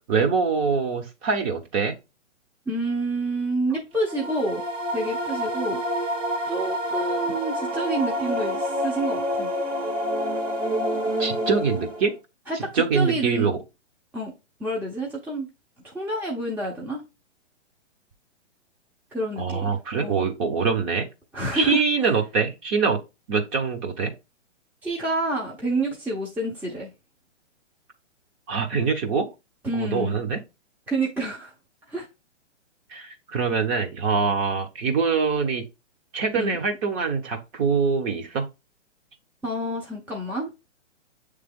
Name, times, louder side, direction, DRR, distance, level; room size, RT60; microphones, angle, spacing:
voice 1, 0.1-2.0 11.2-12.1 12.7-13.6 19.4-21.0 21.5-23.0 23.3-24.1 28.5-29.3 29.7-30.4 32.9-35.6 36.1-38.5, right 5 dB, 25° right, 1.0 m, -24 dB
voice 2, 2.7-4.6 4.9-5.8 6.5-9.5 12.5-13.5 14.1-14.3 14.6-15.5 15.8-17.0 19.1-19.7 20.0-20.2 21.3-21.8 24.8-26.9 29.6-30.2 30.9-31.5 31.9-32.1 36.3-36.6 39.4-40.5, right 2 dB, 5° right, 0.7 m, -28 dB
sound 1, 4.0-12.2, equal, 85° right, 1.8 m, -27 dB
7.6 x 3.3 x 3.7 m
hypercardioid pair, 145°, 36 cm